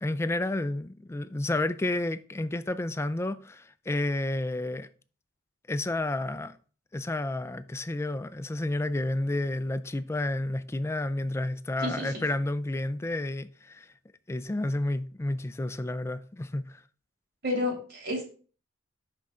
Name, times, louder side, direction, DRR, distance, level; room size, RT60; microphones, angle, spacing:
voice 1, 0.0-4.9 5.7-6.6 6.9-13.9 14.3-16.8, left 2 dB, 15° left, 0.3 m, -31 dB
voice 2, 17.4-18.2, left 2 dB, 60° right, 3.2 m, -30 dB
6.1 x 5.4 x 3.7 m
head